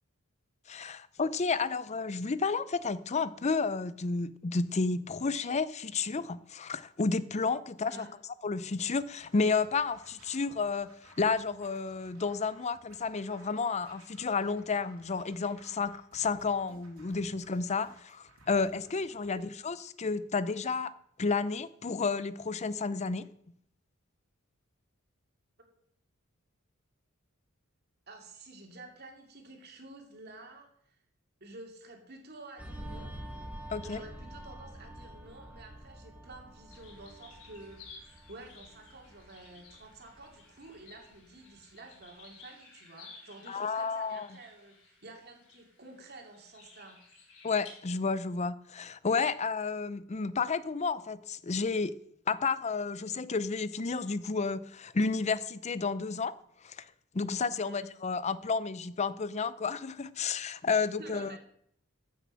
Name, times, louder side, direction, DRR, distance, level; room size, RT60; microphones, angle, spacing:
voice 1, 0.7-8.1 8.4-20.9 21.2-23.3 33.7-34.0 43.5-44.3 47.4-52.0 52.3-56.3 56.6-56.9 57.1-61.4, left 4 dB, 30° left, 0.5 m, -31 dB
Scratching (performance technique), 9.1-19.4, right 2 dB, 90° right, 3.2 m, -59 dB
voice 2, 28.1-31.0 31.4-33.4 33.8-47.0 57.6-57.9 60.8-61.4, right 2 dB, 50° right, 2.6 m, -50 dB
sound 1, 32.6-41.6 42.0-42.2, right 1 dB, 5° right, 1.3 m, -47 dB
sound 2, 36.7-47.7, left 5 dB, 80° left, 4.0 m, -55 dB
14.5 x 6.8 x 6.4 m
head